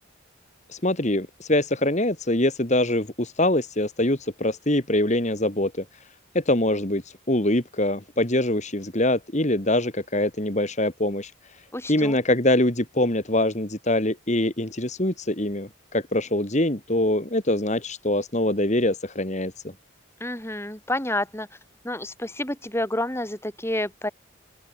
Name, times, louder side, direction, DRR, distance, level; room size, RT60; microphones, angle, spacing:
voice 1, 0.7-6.0 6.3-11.6 11.9-19.5, left 1 dB, 35° left, 2.2 m, -24 dB
voice 2, 11.7-12.2 20.2-21.5 21.8-24.1, left 1 dB, 10° left, 4.0 m, -29 dB
open air
head